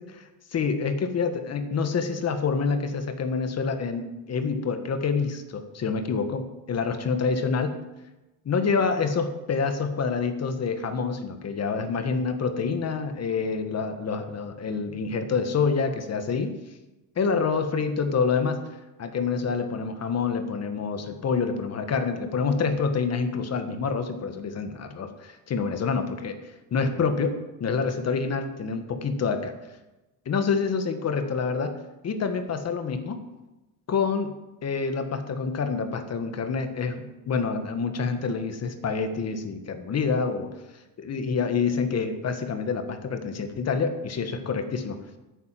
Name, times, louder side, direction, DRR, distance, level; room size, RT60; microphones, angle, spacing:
voice 1, 0.1-4.0 4.3-7.8 8.5-16.5 17.1-18.6 19.0-26.4 26.7-29.5 30.2-31.7 32.0-33.2 33.9-34.3 34.6-40.5 41.0-45.0, left 5 dB, 45° left, 8 dB, 1.6 m, -27 dB
11.0 x 9.6 x 7.6 m, 1.0 s
cardioid pair, 130°, 36 cm